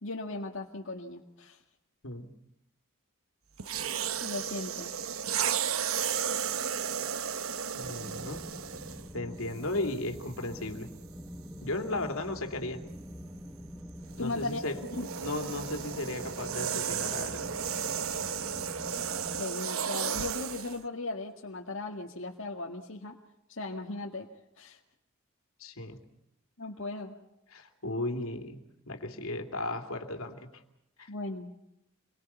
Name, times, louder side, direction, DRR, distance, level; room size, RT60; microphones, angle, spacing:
voice 1, 0.0-1.6 4.2-5.0 14.2-14.7 15.0-15.1 19.4-23.2 23.5-24.3 24.6-24.8 26.6-27.1 31.1-31.5, left 2 dB, 60° left, 0 dB, 2.0 m, -37 dB
sound 1, 3.6-9.1 9.9-10.1 14.1-20.8, right 7 dB, 80° right, 1.1 m, -34 dB
voice 2, 7.7-8.5 9.1-10.9 11.6-12.8 14.2-14.8 15.2-17.5 25.6-26.0 27.5-28.6 28.9-30.5 31.0-31.1, left 2 dB, 80° left, 5 dB, 3.0 m, -35 dB
sound 2, 7.8-19.4, equal, 5° right, 1.3 m, -45 dB
28.5 x 23.5 x 5.6 m, 0.83 s
head